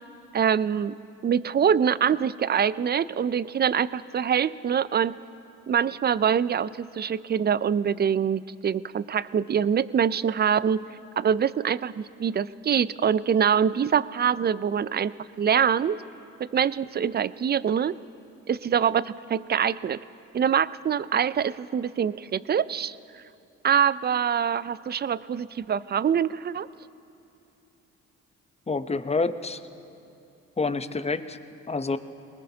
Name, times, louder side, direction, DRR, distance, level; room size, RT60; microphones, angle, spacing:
voice 1, 0.3-1.0 1.2-5.2 5.7-10.8 11.2-16.0 16.4-17.9 18.5-20.0 20.3-23.0 23.6-26.7, right 8 dB, 30° right, 18 dB, 0.4 m, -24 dB
voice 2, 28.7-29.6 30.6-31.4 31.7-32.0, left 3 dB, 20° left, 11 dB, 0.8 m, -27 dB
22.5 x 19.5 x 2.8 m, 2.8 s
supercardioid pair, 55°, 33 cm